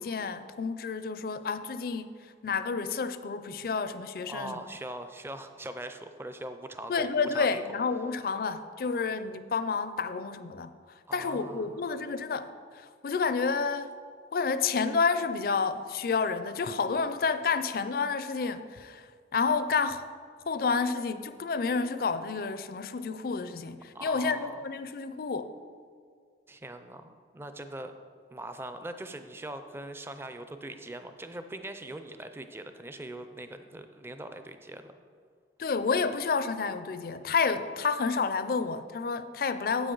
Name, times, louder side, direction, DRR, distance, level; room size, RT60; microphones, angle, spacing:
voice 1, 0.0-4.6 6.9-10.7 11.1-13.9 14.3-20.1 20.5-25.5 35.6-39.9, left 5 dB, 55° left, 12 dB, 0.4 m, -30 dB
voice 2, 4.3-7.8 11.1-11.8 23.9-24.6 26.5-27.9 28.3-34.9, right 1 dB, 15° right, 8 dB, 0.4 m, -41 dB
9.8 x 8.1 x 3.9 m, 2.1 s
head